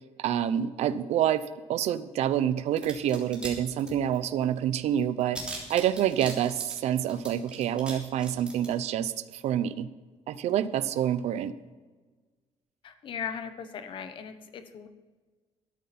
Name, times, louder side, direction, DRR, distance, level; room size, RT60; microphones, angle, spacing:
voice 1, 0.2-9.9 10.3-11.6, right 10 dB, 65° right, 14 dB, 0.8 m, -27 dB
sound 1, 2.8-3.5 3.8-4.4 4.7-4.8 5.0-7.9 8.2-8.7, right 2 dB, 10° right, 3.4 m, -40 dB
voice 2, 12.8-14.9, left 7 dB, 45° left, 9 dB, 1.1 m, -38 dB
13.5 x 13.0 x 4.3 m, 1.4 s
cardioid pair, 170°, 12 cm